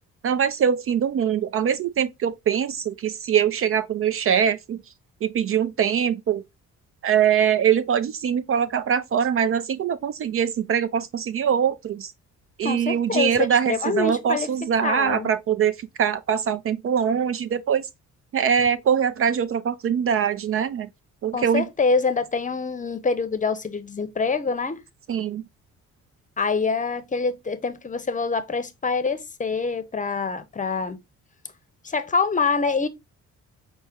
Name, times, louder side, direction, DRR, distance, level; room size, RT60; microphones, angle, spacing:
voice 1, 0.2-4.8 5.2-6.4 7.0-12.1 12.6-15.7 16.0-17.8 18.3-20.9 21.2-21.7 25.1-25.4, right 8 dB, 45° right, 0.4 m, -23 dB
voice 2, 12.6-14.5 14.8-15.3 21.3-24.8 26.4-31.0 31.8-32.9, left 4 dB, 25° left, 0.7 m, -25 dB
5.8 x 2.1 x 3.5 m
cardioid pair, 90°, 30 cm